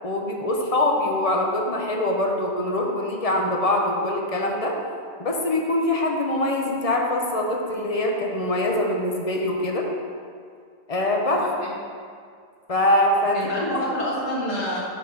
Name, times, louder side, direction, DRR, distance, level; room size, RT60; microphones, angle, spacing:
voice 1, 0.0-4.8 5.2-9.9 10.9-11.4 12.7-13.7, left 1 dB, 35° left, 0 dB, 0.7 m, -23 dB
voice 2, 11.2-11.7 13.3-14.8, left 1 dB, 50° left, -4 dB, 1.9 m, -28 dB
6.0 x 5.4 x 6.1 m, 2.1 s
omnidirectional pair, 1.6 m